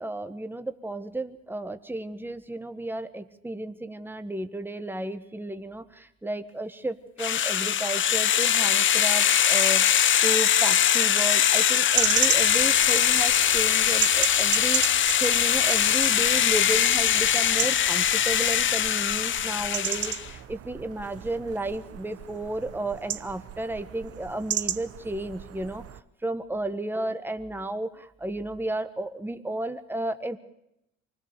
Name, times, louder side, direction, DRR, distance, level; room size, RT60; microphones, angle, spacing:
voice 1, 0.0-25.8 26.2-30.4, right 1 dB, 5° right, 9 dB, 1.4 m, -33 dB
sound 1, 7.2-20.3, left 9 dB, 40° left, 0.7 m, -22 dB
sound 2, 11.9-26.0, right 11 dB, 55° right, 0.9 m, -34 dB
24.5 x 16.5 x 6.8 m, 0.83 s
hypercardioid pair, 55°, 29 cm